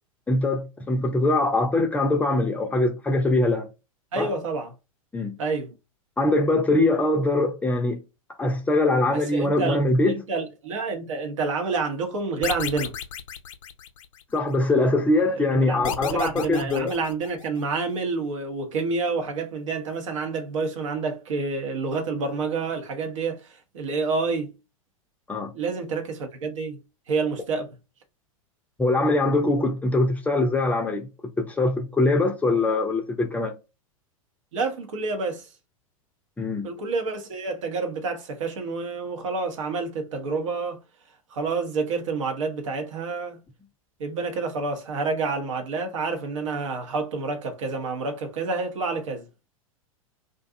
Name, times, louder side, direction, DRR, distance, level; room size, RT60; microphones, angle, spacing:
voice 1, 0.3-3.7 4.2-4.3 5.1-5.3 6.2-8.0 8.4-10.1 14.3-16.9 25.3-25.5 28.8-31.1 31.4-33.5 36.4-36.7, left 2 dB, 10° left, 0.5 m, -22 dB
voice 2, 4.1-4.7 5.4-5.7 9.1-9.8 10.1-12.9 15.3-24.5 25.5-26.8 27.1-27.7 34.5-35.5 36.6-40.8 41.3-43.4 44.0-49.3, right 4 dB, 60° right, 0.9 m, -28 dB
sound 1, 12.4-14.4 15.8-17.6, left 8 dB, 65° left, 0.5 m, -33 dB
2.5 x 2.3 x 2.6 m
figure-of-eight pair, 100°, 18 cm